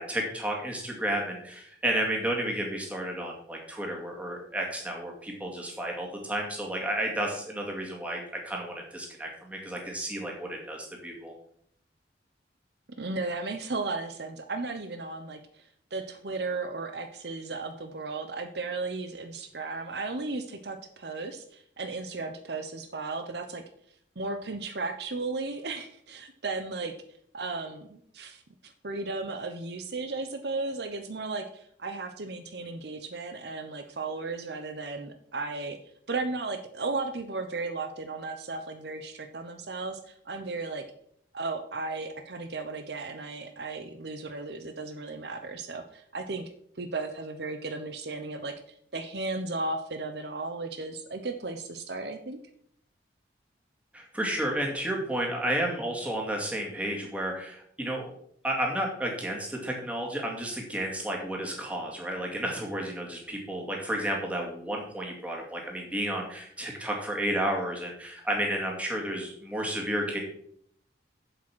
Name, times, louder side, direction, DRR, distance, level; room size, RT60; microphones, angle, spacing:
voice 1, 0.0-11.3 53.9-58.1 58.4-70.2, right 1 dB, 5° right, 0 dB, 2.3 m, -32 dB
voice 2, 13.0-15.6 15.9-23.6 24.2-26.9 27.3-35.8 36.1-40.8 41.3-46.5 46.8-48.5 48.9-52.4, right 3 dB, 60° right, 7 dB, 0.8 m, -35 dB
7.8 x 7.6 x 6.2 m, 0.67 s
head